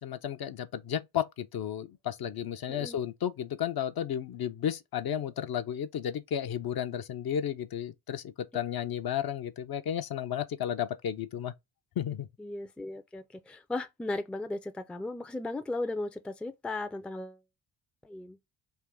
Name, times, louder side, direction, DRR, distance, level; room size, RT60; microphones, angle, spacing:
voice 1, 0.0-11.5 12.0-12.3, left 9 dB, 50° left, 0.6 m, -33 dB
voice 2, 12.4-17.4 18.0-18.4, left 2 dB, ahead, 0.4 m, -36 dB
3.5 x 2.5 x 3.6 m
supercardioid pair, 55°, 47 cm